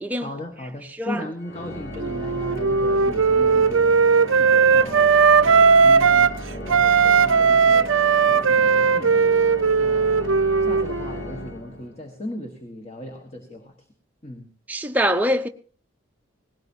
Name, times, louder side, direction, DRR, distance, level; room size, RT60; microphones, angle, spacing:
voice 1, 0.2-4.0 4.4-8.0 8.2-9.3 9.8-13.8 14.2-14.5, left 1 dB, 30° left, 1.6 m, -37 dB
Organ, 1.4-12.2, equal, 50° left, 2.0 m, -36 dB
Wind instrument woodwind instrument, 2.0-6.4 6.7-11.2, right 5 dB, 75° right, 0.6 m, -17 dB
voice 2, 14.7-15.5, equal, 10° right, 0.7 m, -23 dB
19.0 x 17.5 x 2.8 m
head